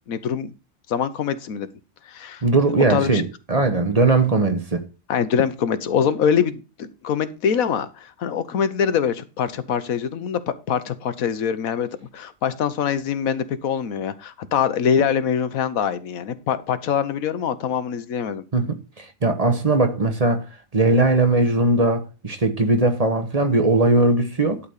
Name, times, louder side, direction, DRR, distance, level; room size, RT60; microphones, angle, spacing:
voice 1, 0.1-0.5 0.9-1.7 2.1-2.4 2.9-3.2 5.1-11.9 12.1-18.4, left 7 dB, 80° left, 1.3 m, -24 dB
voice 2, 2.4-4.8 18.5-20.4 20.7-24.6, right 2 dB, 30° right, 1.1 m, -19 dB
11.5 x 4.1 x 6.6 m
omnidirectional pair, 1.4 m